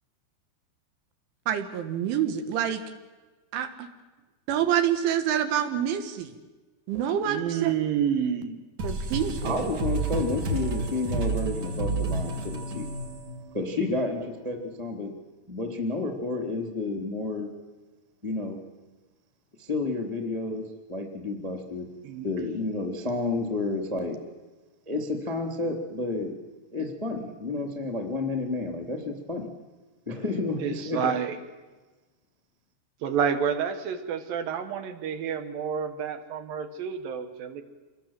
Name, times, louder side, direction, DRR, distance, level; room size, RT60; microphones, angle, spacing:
voice 1, 1.5-2.8 3.5-3.9 4.5-6.4 6.9-7.7 8.8-9.7, right 9 dB, 80° right, 8 dB, 4.0 m, -27 dB
voice 2, 7.2-8.6 22.0-22.3 30.6-31.4 33.0-37.6, right 7 dB, 65° right, 9 dB, 2.5 m, -29 dB
sound 1, 8.8-14.1, right 3 dB, 45° right, 3.0 m, -30 dB
voice 3, 9.4-12.9 13.5-15.1 15.5-17.5 18.2-18.6 19.6-21.9 22.2-24.2 24.9-26.3 26.7-29.5 30.1-31.1, left 3 dB, 10° right, 3 dB, 2.1 m, -30 dB
26.5 x 21.0 x 7.6 m, 1.3 s
omnidirectional pair, 5.5 m